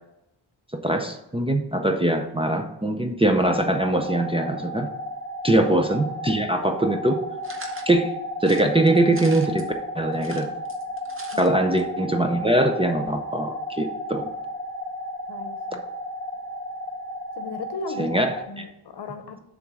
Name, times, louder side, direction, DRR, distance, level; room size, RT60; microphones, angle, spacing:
voice 1, 0.8-4.9 5.4-7.2 7.9-8.1 8.4-10.5 11.4-14.2 18.0-18.6, right 1 dB, 15° right, 4 dB, 0.5 m, -22 dB
sound 1, 3.4-18.4, left 1 dB, 25° left, 0.7 m, -33 dB
sound 2, 7.4-7.9 8.4-9.7 10.1-11.5 11.8-11.9 12.1-12.2, right 2 dB, 30° right, 0.8 m, -41 dB
voice 2, 15.3-15.8 17.4-18.1 18.5-19.4, left 4 dB, 70° left, 9 dB, 0.8 m, -36 dB
7.0 x 3.7 x 6.1 m, 0.87 s
wide cardioid pair, 150°, 42 cm